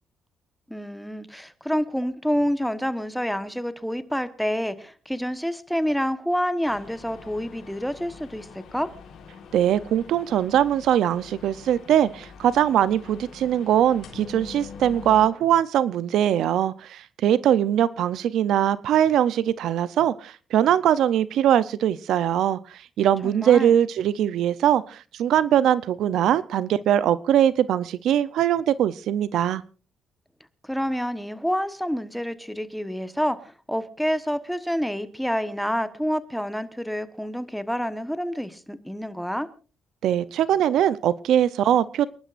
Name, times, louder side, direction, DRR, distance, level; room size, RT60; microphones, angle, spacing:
voice 1, 0.7-8.9 23.2-23.7 30.6-39.5, equal, ahead, 12 dB, 1.2 m, -28 dB
sound 1, 6.6-15.3, left 6 dB, 70° left, 3.7 m, -44 dB
voice 2, 9.5-29.6 40.0-42.1, right 10 dB, 80° right, 17 dB, 0.6 m, -21 dB
29.0 x 11.0 x 2.5 m, 0.35 s
cardioid pair, 90°, 0 cm